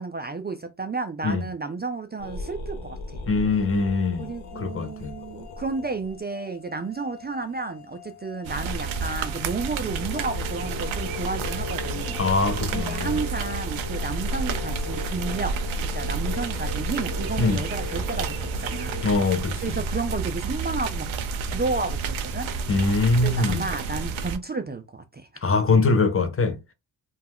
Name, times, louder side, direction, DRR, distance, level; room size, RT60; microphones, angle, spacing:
voice 1, 0.0-3.2 4.2-12.2 12.7-15.6 15.9-19.0 19.6-21.1 21.5-22.5 23.2-25.4, right 3 dB, 25° right, 0.3 m, -32 dB
sound 1, 2.2-6.2 8.9-9.0 9.4-9.5 9.6-19.0, left 5 dB, 90° left, 0.7 m, -39 dB
voice 2, 3.3-4.3 4.5-5.2 12.2-13.2 17.4-17.6 19.0-19.8 22.7-23.7 25.4-26.6, left 3 dB, 30° left, 0.7 m, -23 dB
sound 2, 3.6-16.5, left 13 dB, 60° left, 0.8 m, -48 dB
sound 3, 8.4-24.4, right 4 dB, 75° right, 0.6 m, -30 dB
2.2 x 2.1 x 3.5 m
supercardioid pair, 40°, 47 cm